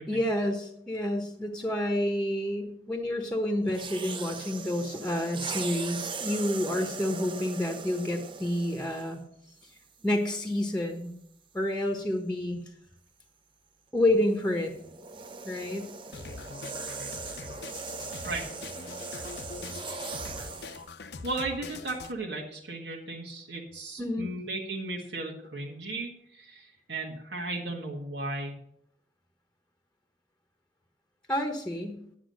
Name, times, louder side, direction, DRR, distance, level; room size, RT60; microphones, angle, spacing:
voice 1, 0.1-9.2 10.0-11.1 11.5-12.6 13.9-14.7 15.4-15.9 24.0-24.3 31.3-32.0, left 1 dB, 5° left, 4 dB, 1.1 m, -29 dB
sound 1, 3.7-9.2 10.0-10.2 14.2-20.9, right 4 dB, 30° right, 0.7 m, -39 dB
sound 2, 16.1-22.1, left 4 dB, 65° left, 0.7 m, -43 dB
voice 2, 21.2-28.6, right 2 dB, 85° right, -2 dB, 1.7 m, -35 dB
10.0 x 7.5 x 6.4 m, 0.72 s
head